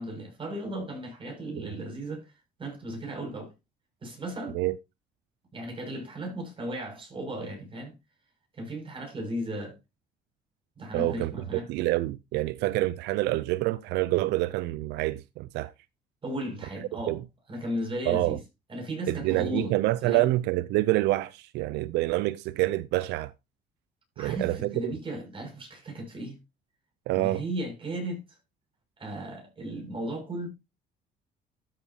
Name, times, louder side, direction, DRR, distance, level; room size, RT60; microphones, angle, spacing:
voice 1, 0.0-2.3 2.6-3.5 4.0-4.6 5.5-7.9 8.6-9.8 10.8-11.7 16.2-17.2 17.5-18.4 18.7-19.7 20.0-20.3 24.2-26.4 27.1-28.2 29.0-30.5, right 1 dB, 30° right, 6.4 m, -35 dB
voice 2, 10.9-11.3 11.7-15.7 17.1-17.2 18.1-18.4 19.1-23.3 24.2-24.9 27.1-27.4, right 18 dB, 85° right, 0.4 m, -27 dB
13.0 x 7.3 x 2.8 m
cardioid pair, 110°, 17 cm